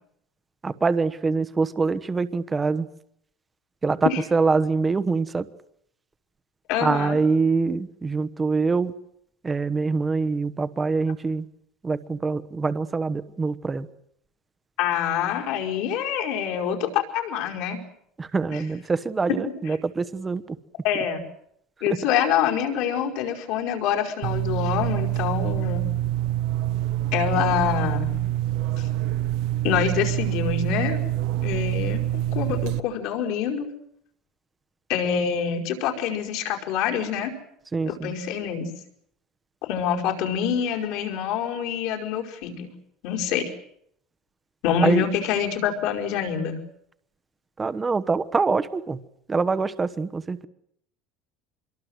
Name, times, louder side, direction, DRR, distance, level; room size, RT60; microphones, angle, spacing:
voice 1, 0.6-2.9 3.8-5.5 6.8-8.9 9.4-11.5 11.8-13.9 18.2-20.6 37.7-38.1 44.8-45.1 47.6-49.0 49.3-50.5, right 4 dB, 15° right, 13 dB, 1.1 m, -24 dB
voice 2, 6.7-7.2 14.8-17.8 18.5-18.6 20.8-21.2 21.8-25.9 27.1-28.2 28.8-28.9 29.6-31.0 31.4-33.7 34.9-37.3 37.8-38.7 39.7-42.7 43.0-43.5 44.6-46.6, left 8 dB, 65° left, 2 dB, 5.1 m, -26 dB
sound 1, 24.2-32.8, right 14 dB, 65° right, 1.1 m, -26 dB
25.5 x 22.5 x 8.0 m, 0.72 s
cardioid pair, 140°, 0 cm